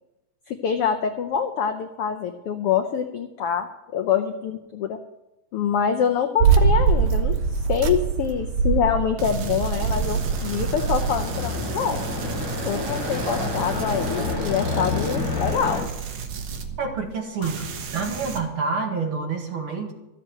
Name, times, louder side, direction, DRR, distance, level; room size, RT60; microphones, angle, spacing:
voice 1, 0.5-5.0 5.5-12.0 12.7-15.8 17.4-17.5, left 7 dB, 80° left, 6 dB, 1.3 m, -25 dB
sound 1, 6.4-11.3, right 5 dB, 85° right, 2.7 m, -22 dB
sound 2, 9.2-17.1 17.4-18.4, right 5 dB, 65° right, 2.4 m, -33 dB
sound 3, 9.6-15.8, left 3 dB, 45° left, 5.3 m, -29 dB
voice 2, 16.8-17.6 17.9-19.9, right 4 dB, 50° right, 1 dB, 2.4 m, -27 dB
14.0 x 7.6 x 7.7 m, 1.0 s
omnidirectional pair, 3.5 m